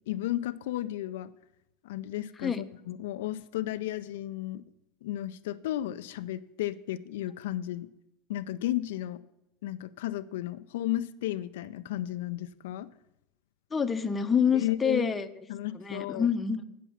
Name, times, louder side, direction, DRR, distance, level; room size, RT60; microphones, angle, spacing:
voice 1, 0.1-1.3 1.8-4.6 5.0-7.9 8.3-9.2 9.6-12.9 14.5-15.1 15.5-16.3, left 14 dB, 80° left, 12 dB, 0.4 m, -33 dB
voice 2, 13.7-15.3 15.7-16.6, left 6 dB, 20° left, 9 dB, 0.7 m, -27 dB
8.3 x 7.0 x 7.2 m, 0.87 s
supercardioid pair, 115°, 0 cm